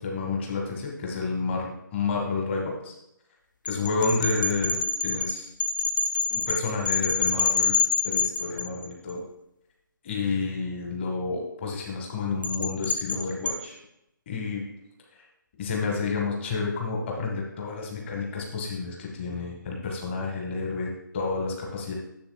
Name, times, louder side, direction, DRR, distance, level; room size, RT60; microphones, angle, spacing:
voice 1, 0.0-2.9 3.6-5.5 6.3-7.7 8.0-9.2 10.0-13.8 14.3-14.6 15.2-15.3 15.6-21.9, left 4 dB, 35° left, 0 dB, 1.3 m, -30 dB
sound 1, 3.7-9.1 12.4-13.5, left 5 dB, 65° left, 0.9 m, -27 dB
10.5 x 7.1 x 2.3 m, 0.84 s
figure-of-eight pair, 140°, 11 cm